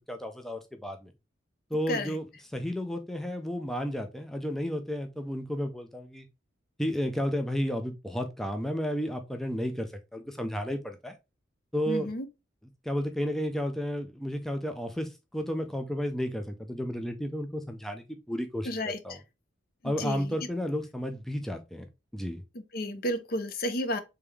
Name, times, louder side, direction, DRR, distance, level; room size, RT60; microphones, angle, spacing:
voice 1, 0.1-1.1 1.7-2.3 2.5-6.3 6.8-11.2 11.7-12.1 12.8-18.8 19.0-19.2 19.8-21.9 22.1-22.4, equal, ahead, 0.4 m, -32 dB
voice 2, 11.9-12.3 18.7-19.2 19.8-20.4 22.7-24.0, left 1 dB, 50° left, 0.6 m, -32 dB
3.6 x 3.4 x 3.3 m
head